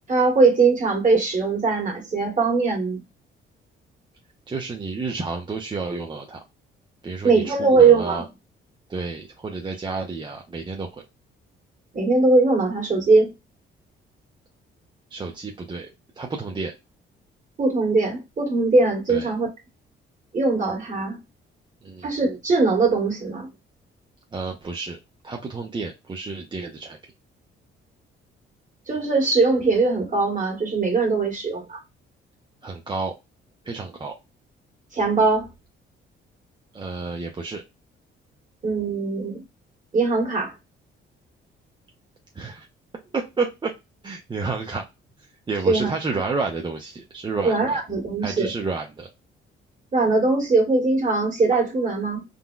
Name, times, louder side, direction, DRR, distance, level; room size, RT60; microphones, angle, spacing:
voice 1, 0.1-3.0 7.2-8.2 11.9-13.3 17.6-19.5 20.3-21.2 22.0-23.5 28.9-31.8 34.9-35.5 38.6-39.4 39.9-40.5 45.6-45.9 47.4-48.5 49.9-52.2, right 3 dB, 40° right, 1.5 m, -20 dB
voice 2, 4.5-6.4 7.0-8.2 8.9-11.0 15.1-15.9 16.2-16.7 19.1-19.3 21.8-22.1 24.3-25.0 25.2-27.0 32.6-33.1 33.7-34.1 36.7-37.6 42.4-42.7 43.1-43.7 44.0-44.8 45.5-47.8 48.2-49.1, right 4 dB, 25° right, 0.5 m, -30 dB
3.7 x 2.1 x 2.3 m
cardioid pair, 90°, 20 cm